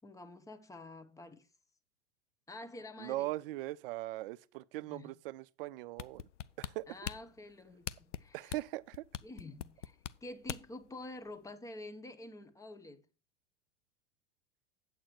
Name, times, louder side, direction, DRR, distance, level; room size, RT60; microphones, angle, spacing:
voice 1, 0.0-1.5 2.5-3.3 4.8-5.1 6.9-8.6 9.2-13.1, left 2 dB, 10° left, 0.8 m, -48 dB
voice 2, 3.0-6.2 6.6-7.0 8.3-9.0, right 17 dB, 50° right, 0.5 m, -40 dB
sound 1, 6.0-10.8 11.3-11.4, left 10 dB, 75° left, 0.6 m, -42 dB
8.7 x 8.0 x 4.4 m
figure-of-eight pair, 90°, 36 cm